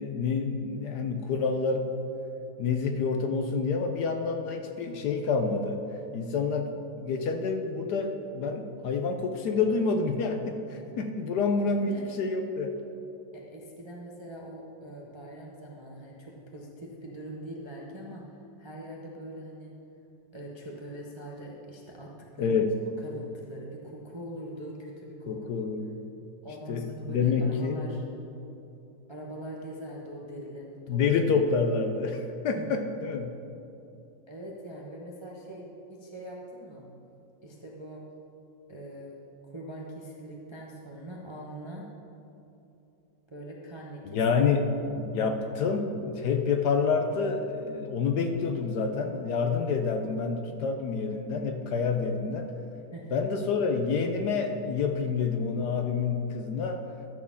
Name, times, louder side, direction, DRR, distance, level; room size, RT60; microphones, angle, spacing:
voice 1, 0.0-1.9 2.6-5.8 6.1-12.7 22.4-22.7 25.3-25.9 26.7-27.8 30.9-33.4 44.0-52.5 53.1-56.8, left 5 dB, 70° left, 6 dB, 1.1 m, -28 dB
voice 2, 11.7-12.1 13.3-19.7 20.3-22.6 23.0-25.7 26.4-28.0 29.1-31.0 32.6-32.9 34.3-35.6 35.9-36.9 37.4-38.1 38.7-39.2 39.4-41.9 43.3-44.2 52.9-53.2, right 1 dB, 30° right, -3 dB, 0.5 m, -42 dB
12.5 x 4.4 x 7.1 m, 2.8 s
omnidirectional pair, 2.1 m